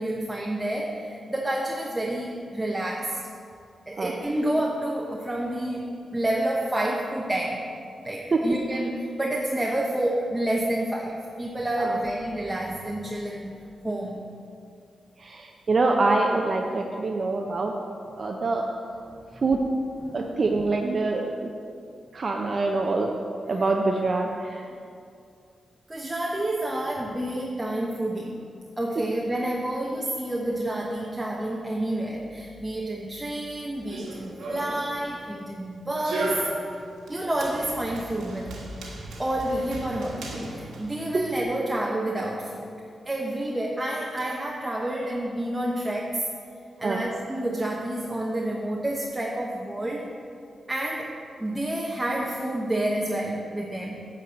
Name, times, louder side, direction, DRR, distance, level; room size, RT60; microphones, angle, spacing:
voice 1, 0.0-3.2 3.9-7.6 8.0-13.6 13.8-14.3 20.1-20.2 25.9-28.4 28.8-36.5 37.1-38.7 39.2-46.3 46.8-50.1 50.7-51.1 51.4-54.0, right 1 dB, 20° right, -2 dB, 1.0 m, -29 dB
voice 2, 15.2-17.7 18.2-18.6 19.4-19.6 20.1-21.5 22.1-23.1 23.5-24.7 41.1-41.2 46.8-47.0, right 3 dB, 55° right, 1 dB, 0.7 m, -25 dB
Run, 33.7-41.4, right 2 dB, 85° right, 1.5 m, -36 dB
9.4 x 4.8 x 7.1 m, 2.4 s
supercardioid pair, 45°, 0 cm